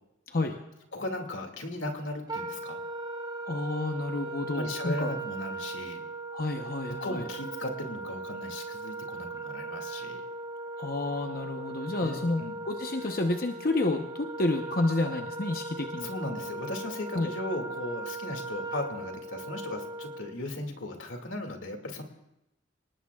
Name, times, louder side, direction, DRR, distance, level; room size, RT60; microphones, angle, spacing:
voice 1, 0.9-2.8 4.5-6.0 6.9-10.2 11.8-12.6 16.0-22.0, left 2 dB, 85° left, 3 dB, 2.3 m, -37 dB
Wind instrument woodwind instrument, 2.3-20.4, right 2 dB, 20° right, 1.1 m, -38 dB
voice 2, 3.5-5.1 6.3-7.2 10.8-16.1 17.1-17.3, left 2 dB, 50° left, 4 dB, 0.9 m, -30 dB
29.0 x 19.0 x 2.4 m, 0.89 s
head